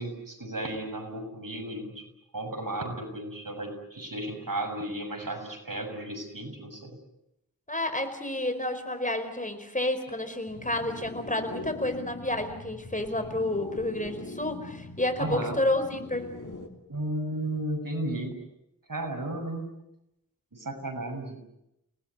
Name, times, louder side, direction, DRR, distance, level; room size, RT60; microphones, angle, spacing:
voice 1, 0.0-2.0 2.3-7.0 15.2-15.6 16.9-18.3 18.9-19.7 20.5-21.4, right 1 dB, 75° right, 4 dB, 6.9 m, -34 dB
voice 2, 7.7-16.3, left 1 dB, 25° left, 8 dB, 4.8 m, -30 dB
sound 1, 10.5-16.7, left 2 dB, 65° left, 3.1 m, -42 dB
29.5 x 19.0 x 9.6 m, 0.85 s
wide cardioid pair, 45°, 34 cm